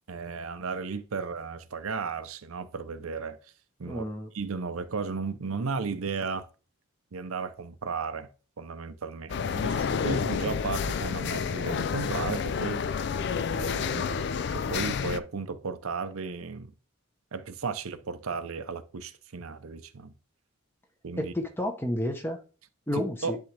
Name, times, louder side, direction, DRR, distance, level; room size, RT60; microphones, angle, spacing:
voice 1, 0.1-3.4 3.8-4.0 4.3-6.5 7.1-8.3 8.6-12.8 13.6-14.2 14.5-16.7 17.3-20.1 21.0-21.3 22.9-23.4, right 4 dB, 80° right, 0.6 m, -34 dB
voice 2, 3.8-4.3 21.2-22.4 22.9-23.4, left 1 dB, 10° left, 0.8 m, -31 dB
sound 1, 9.3-15.2, left 6 dB, 55° left, 0.3 m, -29 dB
10.5 x 3.7 x 3.3 m
head